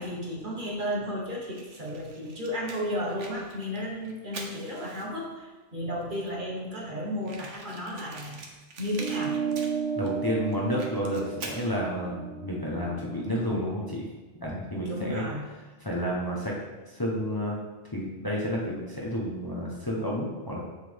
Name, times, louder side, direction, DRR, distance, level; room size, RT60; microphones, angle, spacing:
voice 1, 0.0-8.4 8.8-9.4 14.8-15.4, equal, 45° right, -3 dB, 1.5 m, -33 dB
Fire, 1.5-5.3 6.0-6.1 6.3-6.4 6.6-6.7 7.2-10.1 10.5-11.7, right 3 dB, 85° right, 1.3 m, -44 dB
sound 1, 9.0-13.8, right 7 dB, 70° right, 0.9 m, -34 dB
voice 2, 10.0-14.1 14.4-15.2 15.8-16.6 16.9-17.6 17.9-20.6, equal, 20° left, -4 dB, 1.1 m, -30 dB
7.6 x 6.6 x 3.5 m, 1.2 s
omnidirectional pair, 1.2 m